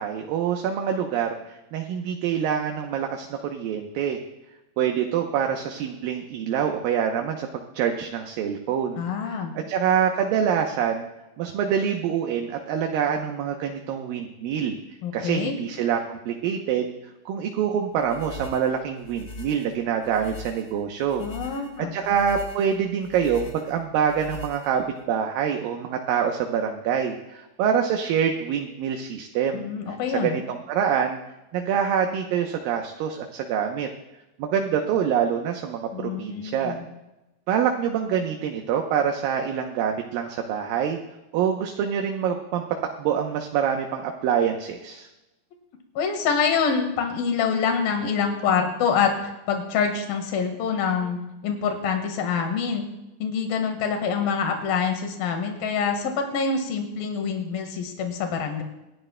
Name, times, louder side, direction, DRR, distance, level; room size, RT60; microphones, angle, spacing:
voice 1, 0.0-4.2 4.8-11.1 11.4-14.8 15.1-16.9 17.3-21.2 21.9-29.7 30.1-31.2 31.5-33.9 34.4-36.8 37.5-41.0 41.3-42.6 43.0-45.1, right 8 dB, 75° right, 3 dB, 2.5 m, -25 dB
voice 2, 9.0-9.5 15.0-15.5 21.2-21.9 29.5-30.4 35.9-36.8 46.0-52.8 53.2-58.6, left 6 dB, 75° left, 4 dB, 3.3 m, -26 dB
sound 1, 18.0-25.0, left 3 dB, 35° left, 1.7 m, -42 dB
26.5 x 11.5 x 2.2 m, 0.98 s
omnidirectional pair, 4.3 m